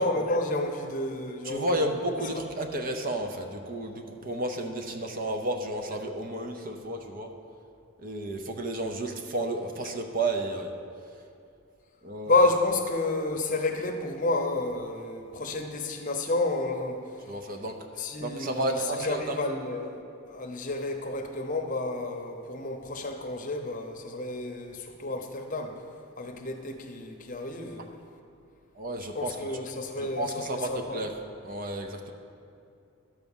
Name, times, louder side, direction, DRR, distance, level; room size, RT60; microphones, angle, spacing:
voice 1, 0.0-2.4 12.3-17.0 18.0-25.8 26.2-27.9 29.0-31.1, left 2 dB, 40° left, 4 dB, 0.8 m, -30 dB
voice 2, 1.4-7.3 8.0-10.7 12.0-12.5 17.3-17.8 18.2-19.4 28.8-29.4 30.0-31.2 31.4-32.1, right 1 dB, 40° right, 4 dB, 0.7 m, -32 dB
12.0 x 4.8 x 7.2 m, 2.5 s
head